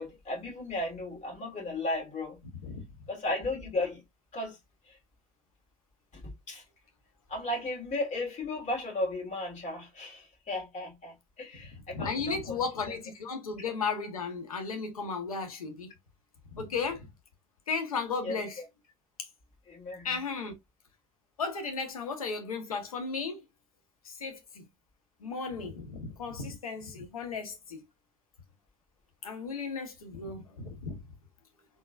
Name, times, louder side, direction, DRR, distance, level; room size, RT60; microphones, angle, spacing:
voice 1, 0.0-2.4 3.1-4.0 4.3-4.6 4.8-5.0 6.1-6.6 7.3-12.6 12.9-13.0 18.2-18.6 19.7-20.2, left 2 dB, 40° left, 2.8 m, -35 dB
voice 2, 11.9-15.9 16.5-17.1 17.7-18.6 20.0-20.5 21.4-23.4 24.0-24.6 25.2-27.8 29.2-31.0, left 5 dB, 85° left, 1.0 m, -35 dB
4.0 x 3.8 x 2.3 m
figure-of-eight pair, 60°, 18 cm